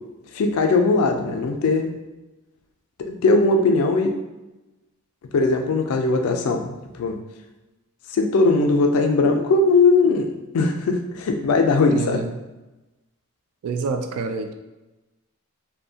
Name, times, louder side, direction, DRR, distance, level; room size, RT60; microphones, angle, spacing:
voice 1, 0.3-1.9 3.1-4.1 5.3-7.2 8.1-12.2, left 3 dB, 80° left, 4 dB, 0.3 m, -19 dB
voice 2, 11.9-12.3 13.6-14.5, right 4 dB, 80° right, 11 dB, 0.3 m, -27 dB
2.6 x 2.1 x 2.7 m, 1.0 s
head